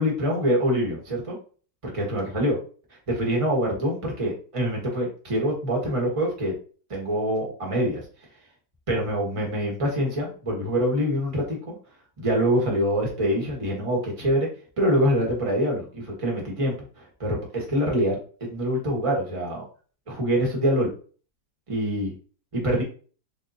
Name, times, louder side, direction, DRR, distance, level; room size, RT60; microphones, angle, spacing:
voice 1, 0.0-1.3 1.8-2.6 3.1-6.5 6.9-8.0 8.9-11.6 12.2-14.5 14.8-19.6 20.1-20.9 21.7-22.1 22.5-22.8, equal, 20° right, -2 dB, 1.0 m, -25 dB
3.6 x 3.5 x 2.7 m, 0.40 s
omnidirectional pair, 2.1 m